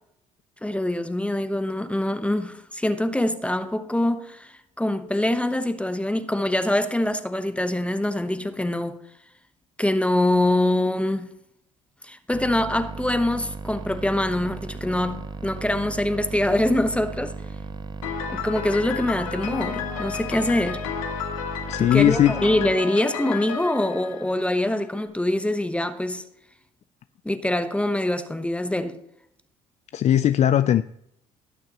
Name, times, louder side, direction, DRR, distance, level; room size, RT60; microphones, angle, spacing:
voice 1, 0.6-9.0 9.8-11.3 12.0-17.4 18.3-20.8 21.8-26.2 27.2-29.0, left 1 dB, 5° left, 1.0 m, -24 dB
sound 1, 12.3-22.7, right 4 dB, 25° right, 0.7 m, -36 dB
Piano, 18.0-24.9, left 8 dB, 90° left, 1.0 m, -32 dB
voice 2, 21.7-22.3 29.9-30.8, left 11 dB, 45° left, 0.4 m, -18 dB
17.5 x 6.5 x 3.0 m
hypercardioid pair, 60°, 17 cm